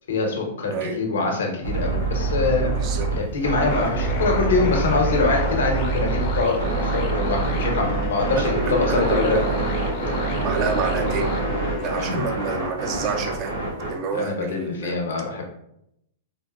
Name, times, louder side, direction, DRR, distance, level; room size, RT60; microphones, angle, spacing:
voice 1, 0.1-2.7 3.1-9.4 12.0-12.2 14.1-15.4, left 4 dB, 90° left, 1 dB, 0.8 m, -24 dB
sound 1, 1.6-13.9, right 3 dB, 80° right, 1.4 m, -25 dB
voice 2, 2.8-3.1 8.4-9.6 10.4-11.3 11.8-13.6 13.9-15.0, right 5 dB, 30° right, 4 dB, 0.3 m, -28 dB
sound 2, 3.7-12.0, left 4 dB, 40° left, 0.5 m, -32 dB
3.9 x 2.2 x 2.3 m, 0.77 s
hypercardioid pair, 155°, 0 cm